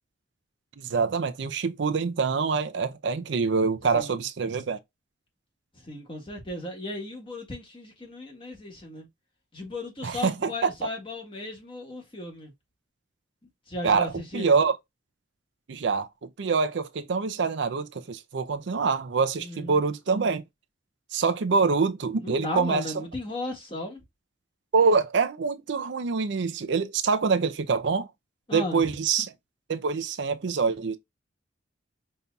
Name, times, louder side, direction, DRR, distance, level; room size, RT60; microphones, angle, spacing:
voice 1, 0.8-4.8 10.0-10.7 13.8-14.7 15.7-20.4 21.1-22.9 24.7-28.1 28.5-29.3 29.7-31.0, right 5 dB, 70° right, 0.5 m, -25 dB
voice 2, 5.7-9.1 9.5-12.5 13.7-14.5 19.4-19.8 22.2-24.0 28.5-28.9, left 2 dB, 25° left, 1.5 m, -36 dB
5.2 x 2.8 x 2.2 m
head